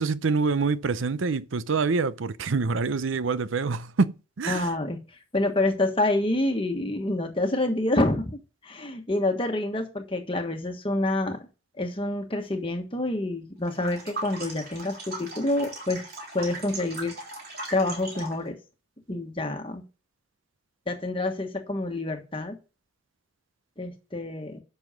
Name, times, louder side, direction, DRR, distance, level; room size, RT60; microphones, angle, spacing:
voice 1, 0.0-4.6, right 4 dB, 75° right, 0.6 m, -26 dB
voice 2, 4.5-5.0 5.3-11.4 11.8-16.0 16.3-17.2 17.7-18.6 19.1-19.8 20.9-22.6 23.8-24.6, left 2 dB, 25° left, 1.3 m, -27 dB
sound 1, 13.7-18.4, right 2 dB, 50° right, 3.7 m, -38 dB
10.5 x 6.3 x 5.0 m
head